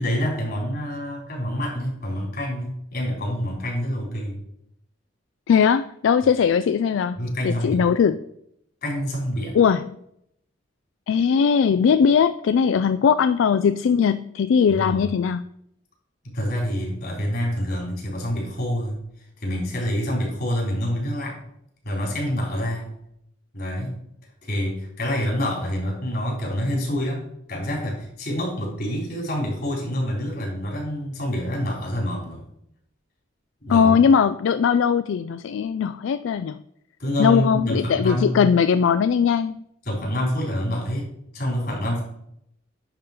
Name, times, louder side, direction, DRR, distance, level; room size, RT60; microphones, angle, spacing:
voice 1, 0.0-4.4 7.2-7.8 8.8-9.6 14.7-15.1 16.2-19.0 19.4-21.4 21.8-22.9 23.5-24.0 24.4-32.5 33.6-34.0 37.0-38.5 39.9-41.1 41.3-42.0, equal, 50° left, -2 dB, 3.7 m, -27 dB
voice 2, 5.5-7.2 7.4-8.2 9.5-9.9 11.1-15.4 33.7-36.6 37.2-39.5, left 6 dB, 75° left, 12 dB, 0.3 m, -19 dB
10.5 x 3.8 x 5.8 m, 0.76 s
head